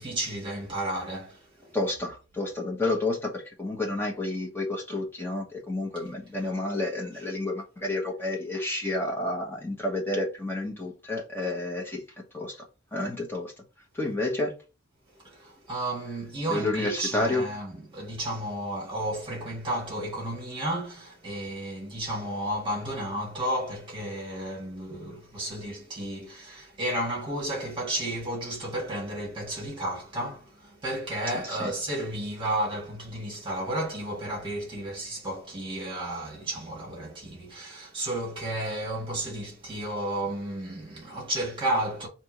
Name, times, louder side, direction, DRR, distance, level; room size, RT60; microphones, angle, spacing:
voice 1, 0.0-1.8 15.2-42.1, right 1 dB, 25° right, 1.7 m, -32 dB
voice 2, 1.7-12.7 12.9-13.5 13.9-14.5 16.5-17.4 31.3-31.7, left 2 dB, 10° left, 1.1 m, -30 dB
3.4 x 2.8 x 4.6 m
head